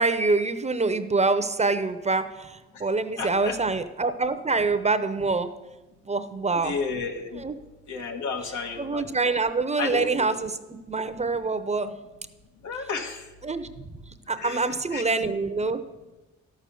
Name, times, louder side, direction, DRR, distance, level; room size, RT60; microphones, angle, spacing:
voice 1, 0.0-5.5 6.1-6.7 7.3-7.6 8.8-11.9 13.4-13.7 14.3-15.8, right 3 dB, 20° right, 11 dB, 0.7 m, -25 dB
voice 2, 3.2-3.6 6.5-7.4 7.9-9.3 9.8-10.3 12.6-13.3 14.4-15.0, left 4 dB, 75° left, 4 dB, 1.7 m, -32 dB
12.5 x 6.4 x 6.9 m, 1.1 s
cardioid pair, 90°, 30 cm